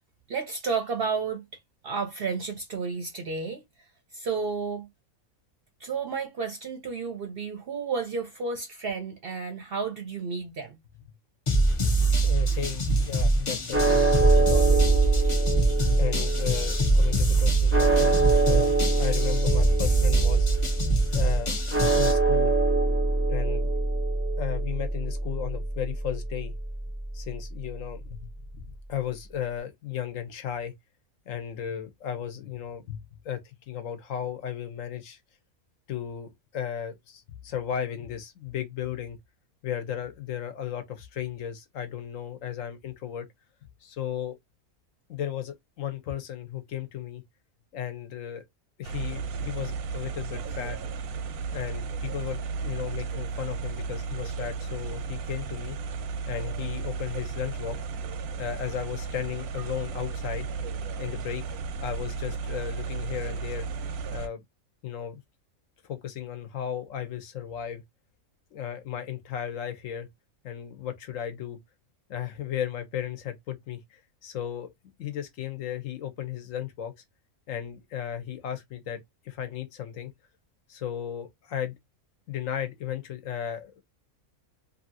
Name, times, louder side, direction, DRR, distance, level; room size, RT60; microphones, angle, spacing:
voice 1, 0.3-3.9 4.1-4.9 5.8-10.8, right 5 dB, 60° right, 0.6 m, -32 dB
sound 1, 11.5-22.1, right 2 dB, 45° left, 0.4 m, -24 dB
voice 2, 12.2-14.8 16.0-18.7 19.0-20.5 21.1-21.6 22.0-22.5 23.3-23.7 24.4-26.5 27.1-28.2 28.5-30.7 31.3-33.4 33.7-35.2 35.9-39.2 39.6-43.3 43.8-44.4 45.1-47.2 47.7-48.4 48.8-50.8 51.5-55.8 56.3-57.8 58.4-60.4 61.0-61.4 61.8-63.7 64.1-64.4 64.8-65.2 65.8-67.8 68.5-70.1 70.4-71.6 72.1-74.7 75.0-76.9 77.5-79.0 79.3-80.1 80.7-81.7 82.3-83.8, left 10 dB, 70° left, 1.0 m, -35 dB
sound 2, 13.7-28.0, right 3 dB, 20° right, 0.4 m, -25 dB
sound 3, 48.8-64.3, right 5 dB, 90° right, 1.1 m, -34 dB
2.7 x 2.7 x 2.6 m
omnidirectional pair, 1.5 m